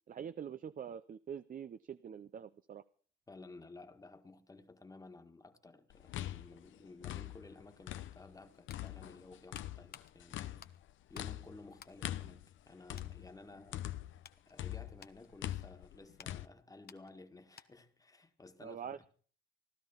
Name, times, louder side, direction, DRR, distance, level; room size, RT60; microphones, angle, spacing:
voice 1, 0.1-2.8 18.6-19.0, right 8 dB, 45° right, 0.6 m, -45 dB
voice 2, 3.3-10.6 11.1-14.0 14.5-19.0, left 3 dB, 15° left, 1.8 m, -55 dB
sound 1, 5.9-8.4 8.7-14.3 14.6-16.5, left 13 dB, 75° left, 0.8 m, -43 dB
sound 2, 8.6-11.4 11.7-12.7 12.9-13.2 13.7-18.0 18.3-18.4, left 8 dB, 50° left, 1.1 m, -59 dB
16.5 x 12.0 x 5.6 m
cardioid pair, 90°, 20 cm